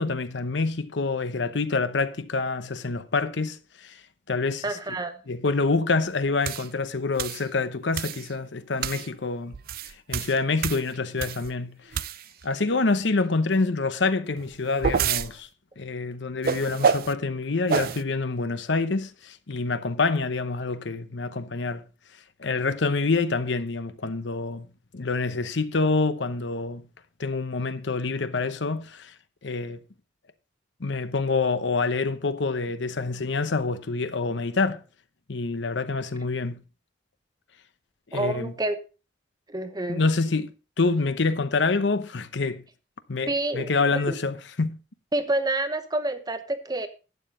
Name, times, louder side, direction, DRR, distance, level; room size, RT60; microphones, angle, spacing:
voice 1, 0.0-4.0 4.3-4.8 5.3-9.6 10.1-11.8 12.4-15.5 15.8-21.8 22.4-24.7 24.9-26.8 27.2-29.1 29.4-29.8 30.8-34.8 35.3-36.6 38.1-38.5 39.9-40.5 40.8-42.6 43.1-44.8, left 3 dB, 65° left, 0.8 m, -26 dB
voice 2, 4.6-5.2 38.1-38.8 39.5-40.0 43.3-44.1 45.1-46.9, right 2 dB, 20° right, 0.9 m, -28 dB
sound 1, 6.4-6.7 7.2-7.4 7.9-8.3 8.8-9.1 9.5-11.5 11.9-12.4 14.4-15.3 16.4-17.1 17.7-18.0, right 6 dB, 50° right, 0.4 m, -27 dB
11.5 x 9.1 x 3.8 m
head